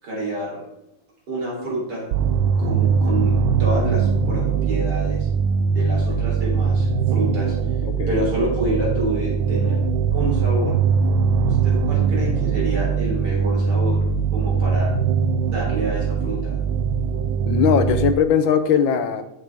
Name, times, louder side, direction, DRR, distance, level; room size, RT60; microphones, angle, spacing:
voice 1, 0.0-0.6 1.3-2.0 2.6-3.3 3.6-5.3 5.7-7.5 8.1-9.8 10.1-10.8 11.4-14.9 15.4-16.5, right 1 dB, 60° right, -4 dB, 4.0 m, -28 dB
sound 1, 2.1-18.1, right 6 dB, 80° right, 1.3 m, -21 dB
voice 2, 17.5-19.2, left 7 dB, 90° left, 10 dB, 1.5 m, -19 dB
9.7 x 7.5 x 3.5 m, 0.90 s
omnidirectional pair, 2.1 m